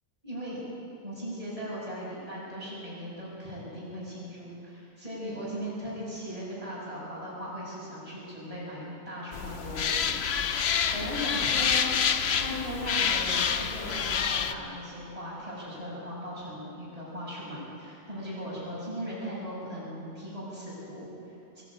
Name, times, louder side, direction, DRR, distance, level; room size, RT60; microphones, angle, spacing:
voice 1, 0.2-0.6 1.0-10.6 10.9-11.9 12.4-21.6, equal, 30° right, -7 dB, 6.9 m, -38 dB
sound 1, 9.3-14.5, left 7 dB, 65° left, 1.1 m, -27 dB
22.5 x 14.0 x 8.5 m, 2.8 s
omnidirectional pair, 1.2 m